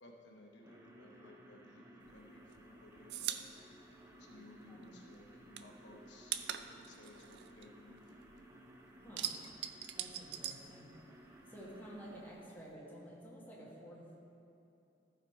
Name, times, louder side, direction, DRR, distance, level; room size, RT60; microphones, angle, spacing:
voice 1, 0.0-3.5 4.2-8.2, left 1 dB, 75° left, 0 dB, 1.1 m, -58 dB
sound 1, 0.6-12.3, right 1 dB, 15° right, 0.7 m, -58 dB
sound 2, 2.1-4.9 5.1-8.4 8.7-11.4 11.6-12.7, right 11 dB, 65° right, 0.4 m, -43 dB
voice 2, 9.0-9.3 9.9-10.9 11.5-14.2, equal, 10° left, -6 dB, 1.7 m, -51 dB
14.5 x 4.8 x 4.6 m, 2.8 s
head